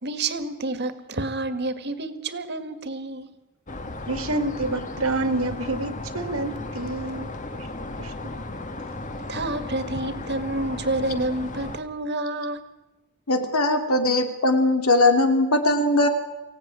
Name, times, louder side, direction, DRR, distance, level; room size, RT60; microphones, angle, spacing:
voice 1, 0.0-3.4 9.2-12.6, right 2 dB, 50° right, 1.8 m, -29 dB
sound 1, 3.7-11.8, left 2 dB, 35° left, 1.6 m, -35 dB
voice 2, 4.1-8.3, right 2 dB, 80° right, 2.2 m, -29 dB
voice 3, 13.3-16.1, left 2 dB, 85° left, 2.8 m, -20 dB
24.0 x 16.5 x 9.8 m
head